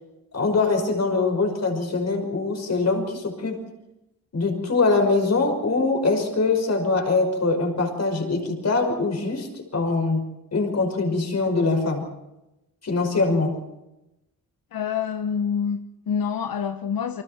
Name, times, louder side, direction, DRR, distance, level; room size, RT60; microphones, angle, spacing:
voice 1, 0.3-3.6 4.3-10.2 10.5-12.0 12.8-13.6, left 3 dB, 50° left, 5.8 m, -23 dB
voice 2, 14.7-17.2, left 7 dB, 85° left, 1.1 m, -27 dB
28.5 x 26.0 x 4.4 m
wide cardioid pair, 155°, 34 cm